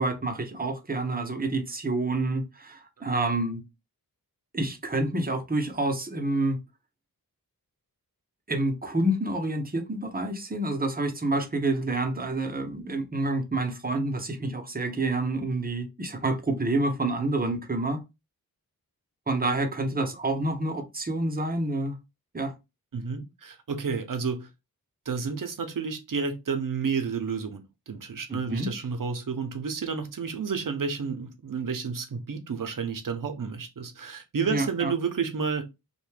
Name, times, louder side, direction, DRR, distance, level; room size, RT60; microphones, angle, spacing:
voice 1, 0.0-3.6 4.5-6.6 8.5-18.0 19.3-22.0 22.3-22.5 28.3-28.7 34.5-34.9, right 2 dB, 25° right, 0.7 m, -28 dB
voice 2, 22.9-24.5 25.1-35.6, right 5 dB, 60° right, 0.6 m, -31 dB
2.6 x 2.2 x 3.2 m
wide cardioid pair, 45°, 37 cm